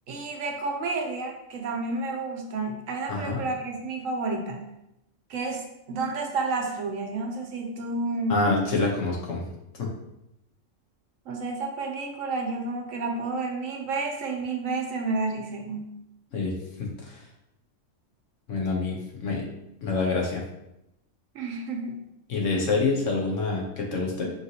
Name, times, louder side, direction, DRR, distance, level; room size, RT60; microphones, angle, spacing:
voice 1, 0.1-4.7 5.3-8.7 11.3-16.0 21.3-22.0, right 3 dB, 75° right, 2 dB, 1.1 m, -30 dB
voice 2, 3.1-3.4 8.3-9.5 9.7-9.9 16.3-16.5 16.8-17.2 18.5-19.5 19.8-20.4 22.3-24.3, left 3 dB, 70° left, -2 dB, 1.2 m, -27 dB
4.9 x 3.2 x 2.8 m, 0.86 s
omnidirectional pair, 1.4 m